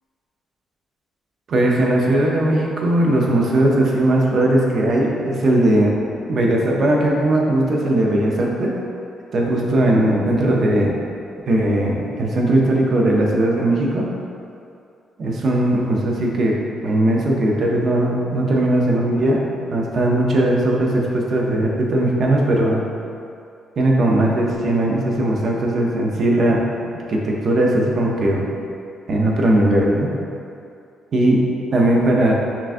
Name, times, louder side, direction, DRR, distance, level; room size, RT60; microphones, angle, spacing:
voice 1, 1.5-6.0 6.3-8.8 9.3-10.9 11.5-14.1 15.2-16.6 16.8-22.8 23.8-26.6 26.9-28.4 29.1-30.1 31.1-31.4 31.7-32.3, right 1 dB, 55° right, -1 dB, 0.6 m, -18 dB
5.7 x 2.4 x 2.5 m, 2.5 s
cardioid pair, 90°, 0 cm